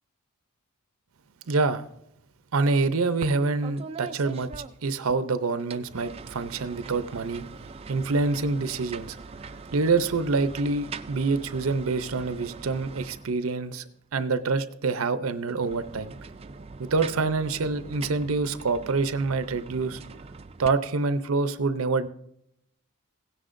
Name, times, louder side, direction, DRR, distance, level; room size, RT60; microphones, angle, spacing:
voice 1, 1.5-1.9 2.5-4.5 4.8-7.4 7.9-9.2 9.7-13.8 14.1-16.1 16.8-20.0 20.6-22.1, right 3 dB, 75° right, 12 dB, 0.6 m, -26 dB
sound 1, 3.2-3.4 3.6-5.2 5.6-13.7 15.4-20.7, right 4 dB, 25° right, 0.4 m, -42 dB
16.5 x 10.0 x 2.6 m, 0.75 s
head